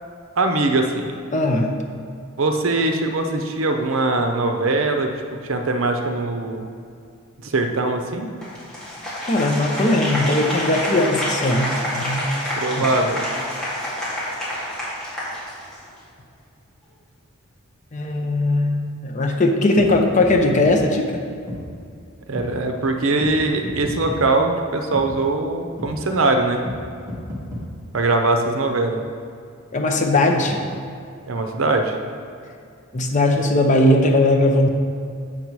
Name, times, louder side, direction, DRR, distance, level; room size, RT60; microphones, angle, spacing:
voice 1, 0.4-1.1 2.4-5.1 5.4-6.7 7.4-8.3 12.6-13.2 22.3-26.6 27.9-29.0 31.3-32.0, right 2 dB, 65° right, 5 dB, 0.7 m, -21 dB
voice 2, 1.3-1.7 9.3-12.3 12.8-12.9 17.9-21.2 29.7-30.7 32.9-34.7, left 2 dB, 35° left, 3 dB, 0.7 m, -19 dB
Applause, 8.4-16.0, left 1 dB, 5° left, 1.8 m, -28 dB
sound 1, 19.8-19.9 20.2-20.3 20.6-20.8 21.5-21.6 22.3-22.5 23.2-23.3 23.6-24.2 24.9-25.1 25.8-25.9 26.7-26.8 27.1-27.7, left 1 dB, 10° right, 1.2 m, -31 dB
7.4 x 5.5 x 4.6 m, 2.4 s
head